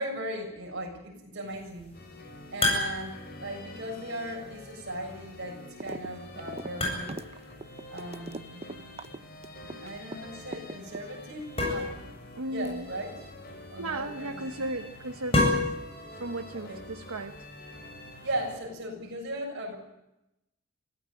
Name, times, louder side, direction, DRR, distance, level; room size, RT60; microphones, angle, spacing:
voice 1, 0.0-2.0 2.5-7.1 7.9-8.7 9.6-12.0 12.5-13.2 13.7-14.6 16.5-16.8 18.2-19.8, right 1 dB, 55° right, 1 dB, 7.2 m, -37 dB
sound 1, 1.4-18.6, left 2 dB, 30° left, 8.0 m, -35 dB
sound 2, 1.9-18.6, left 1 dB, 45° left, 4.6 m, -47 dB
sound 3, 5.8-6.1 6.4-10.2 10.5-11.4, right 2 dB, 30° right, 0.8 m, -40 dB
voice 2, 12.3-12.9 13.2-13.3 13.8-15.8 16.1-17.4, right 2 dB, 85° right, 6 dB, 1.2 m, -36 dB
24.5 x 16.0 x 9.1 m, 0.90 s
head